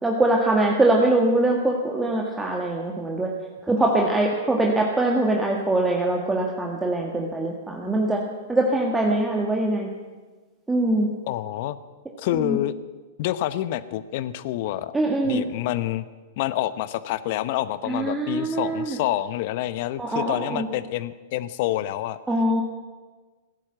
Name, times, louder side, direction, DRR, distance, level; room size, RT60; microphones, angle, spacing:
voice 1, 0.0-3.3 3.6-8.2 8.5-9.9 10.7-11.1 12.3-12.6 14.9-15.5 17.9-19.0 20.0-20.7 22.3-22.6, right 2 dB, 10° right, -1 dB, 1.8 m, -23 dB
voice 2, 11.3-11.8 12.2-12.7 13.2-15.0 15.2-16.0 16.4-22.2, left 14 dB, 55° left, 15 dB, 0.9 m, -27 dB
16.5 x 10.5 x 7.8 m, 1.3 s
hypercardioid pair, 125°, 0 cm